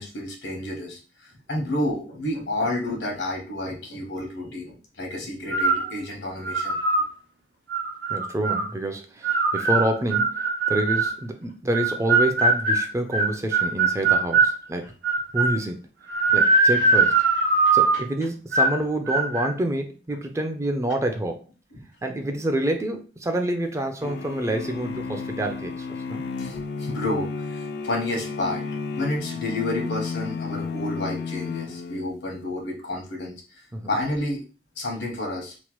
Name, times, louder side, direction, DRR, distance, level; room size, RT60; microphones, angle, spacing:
voice 1, 0.0-6.8 14.8-14.9 17.6-18.0 21.7-21.8 26.4-28.6 28.9-33.3 33.9-34.4 34.8-35.5, left 1 dB, 85° left, 1.0 m, -30 dB
sound 1, 5.5-5.9 6.4-7.1 7.7-8.7 9.2-11.2 11.7-14.6 15.0-15.6 16.1-18.1 18.5-18.8 19.1-19.5, right 3 dB, 70° right, 0.6 m, -21 dB
voice 2, 8.1-10.3 10.7-14.9 15.3-15.8 16.3-17.2 17.7-21.4 22.0-26.2 33.7-33.9, right 1 dB, 15° right, 0.3 m, -27 dB
sound 2, 24.0-32.3, left 4 dB, 65° left, 0.3 m, -32 dB
2.9 x 2.1 x 3.0 m
head